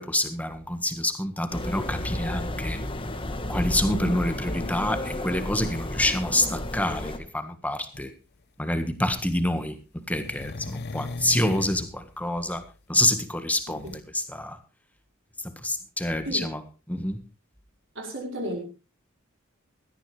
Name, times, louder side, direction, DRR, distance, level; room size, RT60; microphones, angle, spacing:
voice 1, 0.0-2.8 3.5-8.1 8.6-12.6 12.9-13.8 14.3-14.6 15.6-16.6 16.9-17.2, left 1 dB, 5° left, 9 dB, 1.5 m, -27 dB
sound 1, 1.5-7.2, left 1 dB, 25° left, 1.4 m, -32 dB
sound 2, 7.9-8.1 10.1-11.9 13.8-14.0, left 3 dB, 50° left, 0.7 m, -36 dB
voice 2, 18.0-18.6, right 1 dB, 60° right, 1 dB, 5.1 m, -33 dB
17.0 x 13.0 x 3.3 m, 0.30 s
head